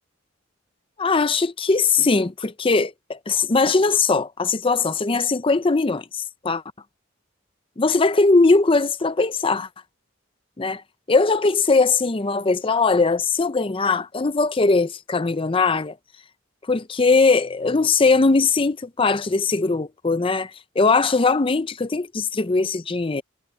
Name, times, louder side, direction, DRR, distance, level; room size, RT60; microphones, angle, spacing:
voice 1, 1.0-6.6 7.8-9.7 10.6-10.8 11.1-16.0 16.7-20.5 20.8-23.2, left 3 dB, 25° left, 0.5 m, -20 dB
head